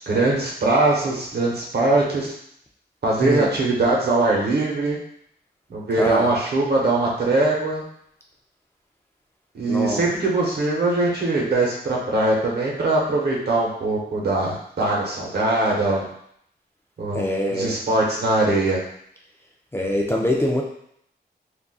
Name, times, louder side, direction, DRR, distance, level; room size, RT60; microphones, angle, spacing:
voice 1, 0.0-2.3 3.0-5.0 5.7-7.8 9.5-16.0 17.0-17.2 17.5-18.8, right 2 dB, 65° right, -3 dB, 0.8 m, -21 dB
voice 2, 9.7-10.1 17.1-17.8 19.7-20.6, left 1 dB, 15° left, -1 dB, 0.4 m, -23 dB
3.7 x 2.4 x 2.3 m, 0.69 s
wide cardioid pair, 165°, 18 cm